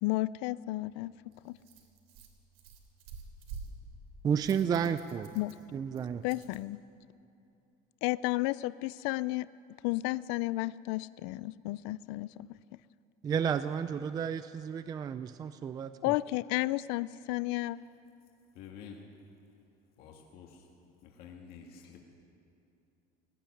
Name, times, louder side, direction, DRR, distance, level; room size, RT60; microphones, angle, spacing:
voice 1, 0.0-1.1 1.4-1.6 5.4-5.5 6.2-6.8 8.0-9.5 9.8-12.5 16.0-17.8, left 19 dB, 75° left, 18 dB, 0.4 m, -32 dB
Rattle, 0.6-6.6, right 5 dB, 85° right, 3.1 m, -50 dB
voice 2, 4.2-5.3 5.7-6.2 13.2-16.1, right 7 dB, 20° right, 11 dB, 0.4 m, -32 dB
voice 3, 18.5-19.0 20.0-20.7 21.0-22.0, left 7 dB, 55° left, 0 dB, 2.1 m, -49 dB
18.0 x 15.0 x 9.8 m, 2.7 s
cardioid pair, 165°, 18 cm